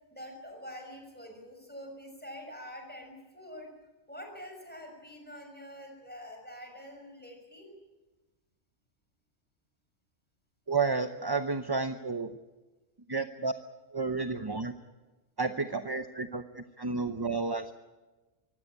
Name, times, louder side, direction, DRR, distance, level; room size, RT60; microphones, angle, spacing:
voice 1, 0.1-3.7 4.1-7.7, equal, 5° left, 3 dB, 5.9 m, -46 dB
voice 2, 10.7-12.3 13.1-13.5 13.9-14.7 15.4-17.7, right 4 dB, 20° right, 8 dB, 0.7 m, -31 dB
24.0 x 16.5 x 9.9 m, 1.2 s
omnidirectional pair, 1.3 m